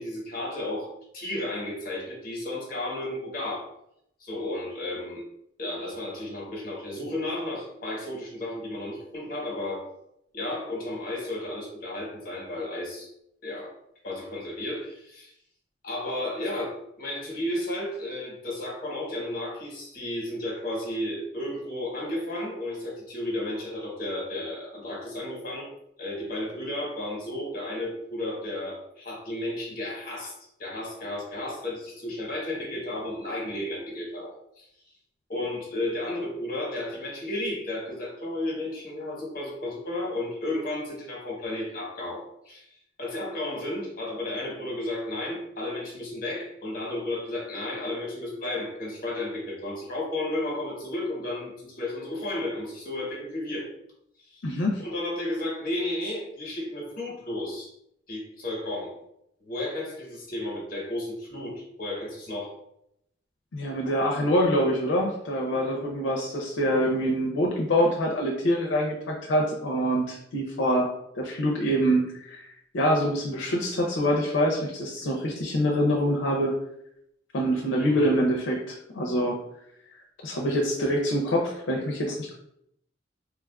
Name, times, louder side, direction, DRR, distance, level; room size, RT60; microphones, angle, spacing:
voice 1, 0.0-3.7 4.2-5.2 5.6-9.9 10.3-13.1 13.4-13.7 14.0-15.3 15.8-25.7 26.0-30.3 30.6-34.7 35.3-42.7 43.0-53.7 54.3-54.4 54.8-57.7 58.1-59.0 59.4-62.6 77.8-78.1, left 1 dB, 50° left, -2 dB, 1.0 m, -33 dB
voice 2, 54.4-54.8 63.5-70.9 71.1-72.5 72.7-76.5 77.3-79.4 80.2-82.3, equal, 80° left, -1 dB, 0.5 m, -25 dB
3.5 x 2.3 x 2.2 m, 0.75 s
head